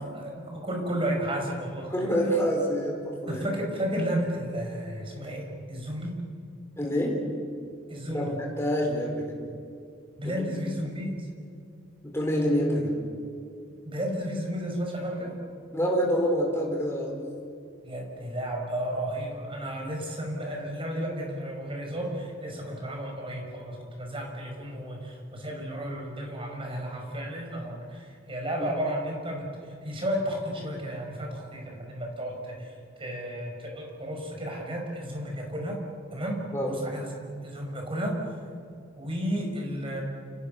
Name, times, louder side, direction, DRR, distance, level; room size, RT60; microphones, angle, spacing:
voice 1, 0.1-1.9 3.3-6.2 7.9-8.4 10.2-11.1 13.8-15.3 17.8-29.5 29.8-32.7 33.0-35.8 36.1-38.2 39.0-40.0, equal, 25° right, 1 dB, 6.5 m, -33 dB
voice 2, 1.9-3.4 6.8-7.2 8.1-9.4 10.2-10.3 12.1-13.0 15.7-17.2 28.6-28.7 36.5-36.7, equal, 15° left, -1 dB, 5.2 m, -27 dB
29.5 x 29.0 x 7.0 m, 2.4 s
head